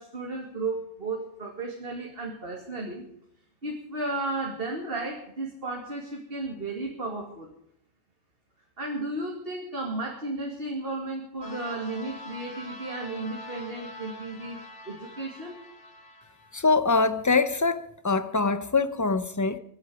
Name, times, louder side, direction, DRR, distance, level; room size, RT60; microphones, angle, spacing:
voice 1, 0.0-3.0 3.6-7.5 8.8-14.6 14.9-15.6, right 2 dB, 45° right, 2.6 m, -34 dB
sound 1, 11.4-16.6, left 1 dB, 60° left, 2.2 m, -44 dB
voice 2, 16.5-19.6, left 4 dB, 15° left, 0.7 m, -24 dB
22.5 x 10.5 x 4.9 m
omnidirectional pair, 1.3 m